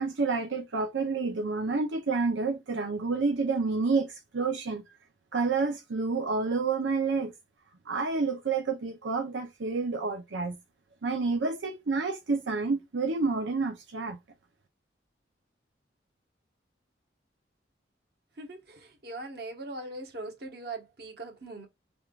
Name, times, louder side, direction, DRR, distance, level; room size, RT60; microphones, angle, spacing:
voice 1, 0.0-4.8 5.3-7.3 7.9-10.6 11.0-14.2, right 4 dB, 85° right, 0.7 m, -29 dB
voice 2, 18.4-21.7, right 2 dB, 60° right, 1.3 m, -40 dB
4.5 x 3.5 x 2.4 m
head